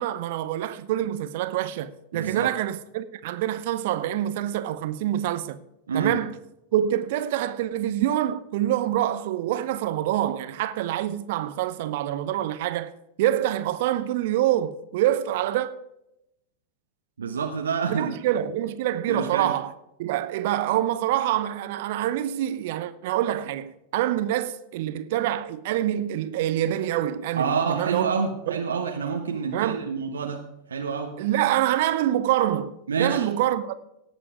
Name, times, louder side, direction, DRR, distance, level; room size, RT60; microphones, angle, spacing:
voice 1, 0.0-5.6 5.9-6.3 6.7-12.9 13.2-15.7 17.9-19.7 20.0-28.1 28.5-28.6 29.5-29.9 31.2-33.7, right 12 dB, 50° right, 0.8 m, -26 dB
voice 2, 2.1-2.5 5.9-6.2 17.2-18.2 19.1-19.5 27.4-30.4 30.7-31.1 32.9-33.3, right 5 dB, 70° right, 1.2 m, -27 dB
18.0 x 7.4 x 4.9 m
figure-of-eight pair, 90°, 0 cm